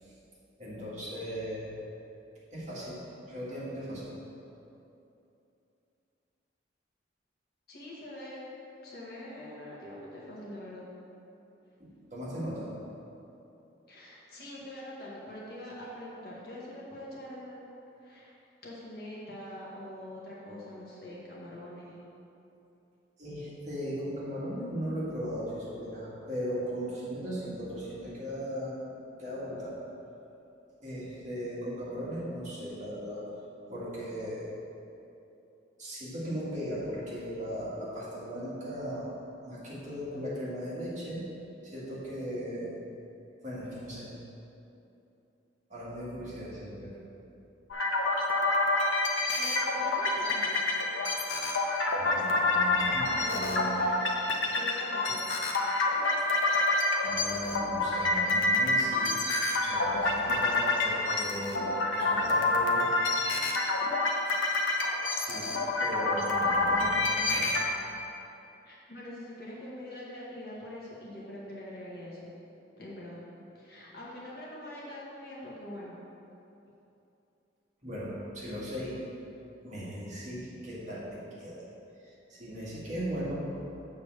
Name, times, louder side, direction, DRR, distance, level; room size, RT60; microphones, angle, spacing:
voice 1, 0.6-1.7 2.5-4.1 11.8-12.7 23.2-28.8 29.2-29.8 30.8-33.2 33.7-34.6 35.8-39.2 39.4-41.3 41.6-42.7 43.4-44.1 45.7-47.0 52.0-53.7 57.0-59.1 59.6-62.9 65.1-65.5 65.8-67.5 77.8-79.0 79.6-81.7 82.0-83.5, equal, 40° right, -8 dB, 1.9 m, -37 dB
voice 2, 7.7-8.5 8.8-10.9 13.9-17.6 18.0-18.3 18.6-22.0 49.4-50.6 53.2-54.0 54.5-55.3 68.6-72.3 72.8-73.2 73.5-76.0, left 1 dB, 55° left, -6 dB, 1.7 m, -43 dB
sound 1, 47.7-67.6, left 2 dB, 90° left, 0.9 m, -28 dB
7.2 x 4.5 x 6.6 m, 2.8 s
head